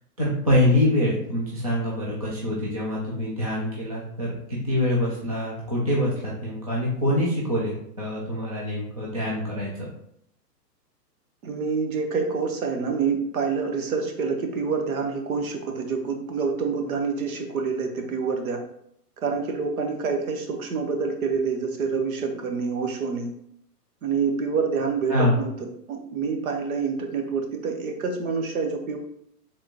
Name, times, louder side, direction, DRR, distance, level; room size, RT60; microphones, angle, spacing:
voice 1, 0.2-9.7 25.1-25.4, left 1 dB, 25° right, -5 dB, 0.4 m, -25 dB
voice 2, 11.4-18.6 19.2-23.3 24.0-25.5 25.9-29.0, right 5 dB, 60° right, 4 dB, 1.0 m, -27 dB
4.7 x 3.6 x 2.9 m, 0.72 s
hypercardioid pair, 165°, 49 cm